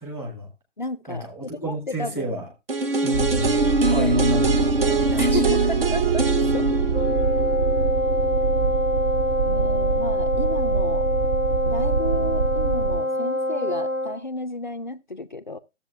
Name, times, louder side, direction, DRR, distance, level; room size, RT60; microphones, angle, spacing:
voice 1, 0.0-0.5 1.1-2.5 3.0-5.6, equal, 5° right, 1.4 m, -31 dB
voice 2, 0.8-2.3 5.2-6.7 9.4-11.1 11.7-15.6, left 2 dB, 40° left, 0.4 m, -33 dB
sound 1, 2.7-8.6 8.9-9.0, right 3 dB, 50° right, 1.1 m, -23 dB
sound 2, 3.1-13.0, right 5 dB, 30° right, 0.6 m, -25 dB
Wind instrument woodwind instrument, 6.9-14.2, left 1 dB, 80° right, 1.9 m, -25 dB
13.5 x 7.4 x 2.4 m
figure-of-eight pair, 140°, 37 cm